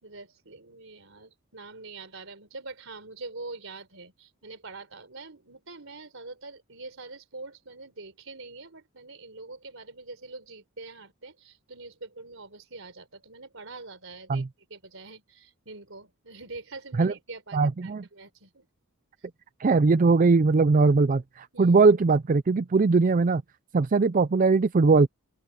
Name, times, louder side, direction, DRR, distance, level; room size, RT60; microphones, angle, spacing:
voice 1, 0.0-18.7 21.5-21.7, right 3 dB, 65° right, 4.4 m, -44 dB
voice 2, 17.5-18.0 19.6-23.4 23.7-25.1, right 4 dB, 40° right, 0.4 m, -20 dB
open air
head